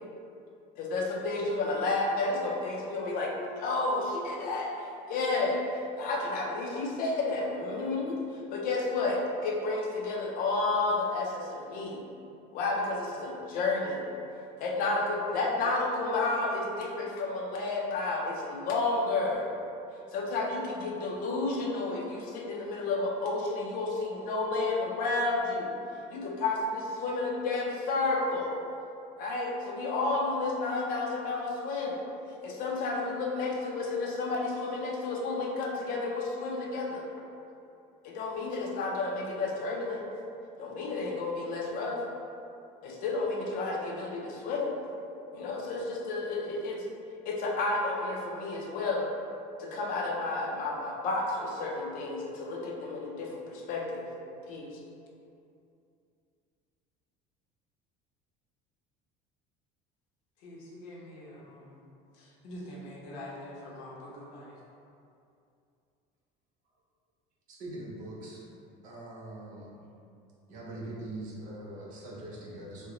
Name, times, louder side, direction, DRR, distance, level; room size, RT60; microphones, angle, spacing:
voice 1, 0.8-5.6 6.0-8.2 8.5-12.0 12.5-14.0 14.6-19.5 20.1-25.8 26.1-28.5 29.2-32.0 32.4-37.0 38.0-40.0 40.6-42.0 42.8-44.7 45.3-46.8 47.3-49.1 49.6-54.1 54.5-54.8, left 3 dB, 45° left, -1 dB, 0.5 m, -31 dB
voice 2, 60.4-61.8 62.2-64.5, left 1 dB, 85° left, -4 dB, 0.8 m, -45 dB
voice 3, 67.5-68.5 68.8-69.8 70.5-72.9, right 1 dB, 45° right, -5 dB, 0.6 m, -42 dB
3.1 x 2.1 x 3.7 m, 2.6 s
cardioid pair, 165°, 19 cm